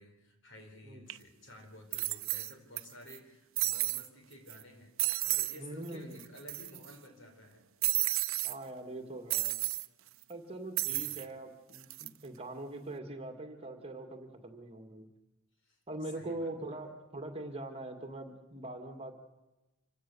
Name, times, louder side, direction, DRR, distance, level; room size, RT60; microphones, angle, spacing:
voice 1, 0.0-4.9 5.2-7.6 10.9-11.3 15.6-15.8 16.1-16.7, left 1 dB, 60° left, 4 dB, 4.6 m, -53 dB
sound 1, 1.1-1.2 1.9-2.8 3.1-3.2 3.6-4.1 4.5-4.6 5.0-5.6 5.9-6.0 6.2-6.9 7.8-8.5 9.3-9.9 10.8-11.2 11.7-12.1, right 19 dB, 65° right, 0.7 m, -32 dB
voice 2, 5.6-6.2 8.4-9.6 10.3-15.1 15.9-19.1, right 2 dB, 30° right, 5 dB, 2.1 m, -42 dB
26.0 x 16.0 x 7.0 m, 1.0 s
head